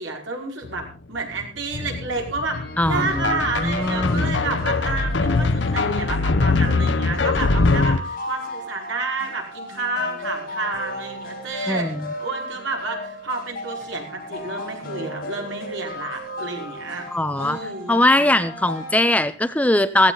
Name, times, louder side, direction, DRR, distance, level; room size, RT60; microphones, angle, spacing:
voice 1, 0.0-2.6 2.9-11.9 12.2-17.1 17.4-18.0, right 3 dB, 75° right, 1 dB, 5.1 m, -30 dB
sound 1, 0.6-0.9 1.2-8.0, left 3 dB, 65° left, 0.9 m, -22 dB
sound 2, 2.5-18.9, left 1 dB, 45° left, 5.8 m, -35 dB
voice 2, 2.8-4.4 11.7-12.0 17.1-17.6 17.9-20.1, left 1 dB, 5° left, 12 dB, 0.6 m, -21 dB
16.5 x 15.5 x 4.0 m, 0.36 s
head